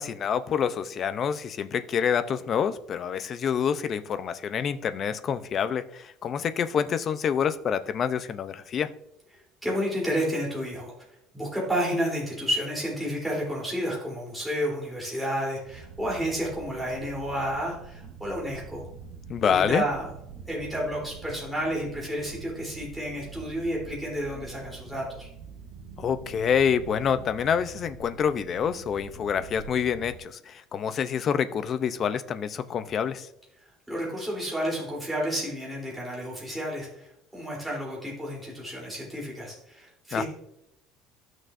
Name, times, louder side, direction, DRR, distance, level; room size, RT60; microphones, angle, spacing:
voice 1, 0.0-8.9 19.3-19.8 26.0-33.3 40.1-40.2, left 7 dB, 35° left, 11 dB, 0.5 m, -27 dB
voice 2, 9.6-10.9 11.3-18.8 19.4-20.1 20.4-25.3 33.9-40.2, equal, 5° right, -4 dB, 3.2 m, -31 dB
sound 1, 15.6-30.2, right 6 dB, 70° right, 1.0 m, -45 dB
14.5 x 6.2 x 2.5 m, 0.76 s
cardioid pair, 150°, 0 cm